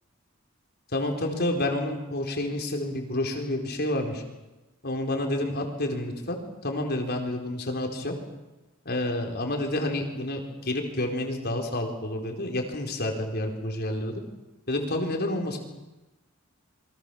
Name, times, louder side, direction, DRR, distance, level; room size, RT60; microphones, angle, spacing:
voice 1, 0.9-4.2 4.8-6.4 6.6-8.1 8.8-14.2 14.7-15.6, left 1 dB, 50° left, 3 dB, 4.5 m, -29 dB
28.5 x 24.0 x 7.2 m, 1.1 s
head